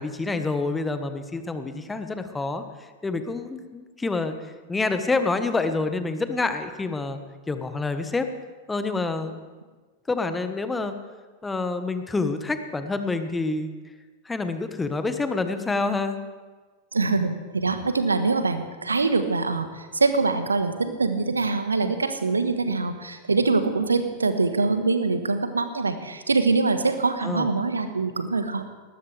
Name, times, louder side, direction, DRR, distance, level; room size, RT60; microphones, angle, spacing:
voice 1, 0.0-2.6 3.0-4.3 4.7-7.2 7.5-8.3 8.7-9.4 10.1-10.9 11.4-13.7 14.2-16.2 21.8-22.0 27.2-27.5, left 3 dB, 10° left, 8 dB, 1.4 m, -27 dB
voice 2, 16.9-28.6, right 3 dB, 75° right, 9 dB, 1.4 m, -24 dB
20.0 x 19.5 x 3.5 m, 1.4 s
figure-of-eight pair, 90°, 0 cm